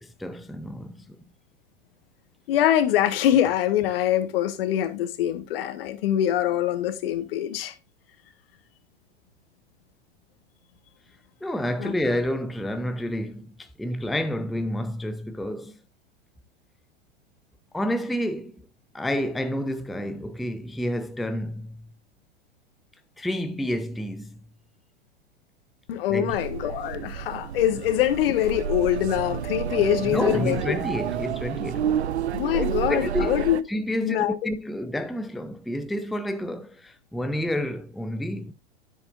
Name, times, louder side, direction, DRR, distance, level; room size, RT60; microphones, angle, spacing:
voice 1, 0.0-1.2 11.4-15.7 17.7-18.7 18.9-21.9 23.2-24.4 26.1-26.4 30.0-32.1 32.5-38.5, equal, ahead, 0.5 m, -29 dB
voice 2, 2.5-7.7 11.8-11.9 25.9-30.7 32.3-33.6 34.0-34.4, left 11 dB, 55° left, 1.4 m, -24 dB
sound 1, 26.3-33.6, right 9 dB, 75° right, 0.6 m, -30 dB
9.6 x 8.5 x 2.5 m
figure-of-eight pair, 95°, 33 cm